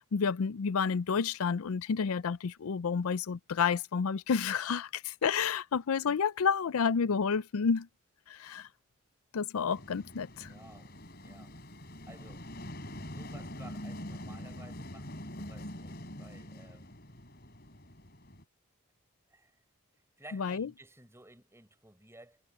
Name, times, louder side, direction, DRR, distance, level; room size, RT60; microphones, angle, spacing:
voice 1, 0.0-7.9 8.3-8.7 9.3-10.5 20.3-20.7, left 6 dB, 85° left, 0.5 m, -30 dB
sound 1, 9.7-18.4, left 1 dB, 45° left, 4.6 m, -44 dB
voice 2, 10.5-11.6 12.1-12.5 13.0-17.0 19.3-19.6 20.2-22.4, right 1 dB, 10° right, 5.8 m, -55 dB
head